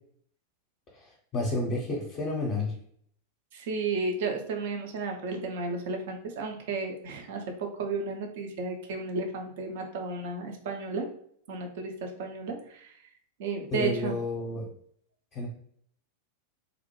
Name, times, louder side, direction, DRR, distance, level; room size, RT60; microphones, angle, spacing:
voice 1, 0.9-2.7 13.7-14.7 15.3-15.5, left 2 dB, 30° left, -4 dB, 0.6 m, -31 dB
voice 2, 3.5-11.1 11.5-13.0 13.4-14.2, right 3 dB, 55° right, 3 dB, 0.5 m, -33 dB
2.5 x 2.1 x 2.9 m, 0.63 s
figure-of-eight pair, 90°, 0 cm